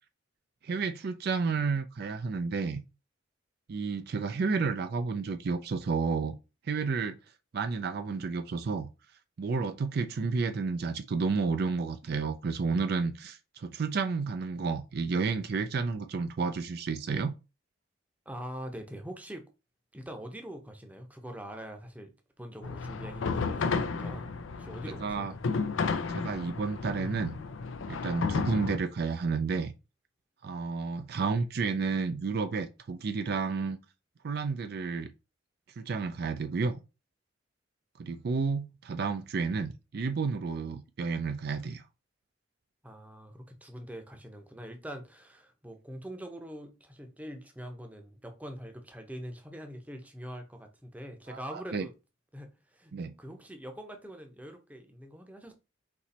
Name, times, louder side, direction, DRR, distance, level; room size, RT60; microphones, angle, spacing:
voice 1, 0.6-2.8 3.7-6.4 6.6-7.2 7.5-8.9 9.4-17.3 25.0-25.3 26.1-27.4 27.9-29.7 30.4-33.8 34.2-35.1 35.8-36.8 38.0-41.8 51.3-51.8 52.9-53.1, right 4 dB, 55° right, 0.4 m, -31 dB
voice 2, 18.3-19.5 19.9-24.3 24.6-25.3 42.8-51.9 52.3-52.9 53.2-55.5, equal, 10° right, 0.7 m, -44 dB
sound 1, 22.6-28.8, left 4 dB, 90° left, 0.5 m, -32 dB
4.2 x 3.0 x 4.1 m
head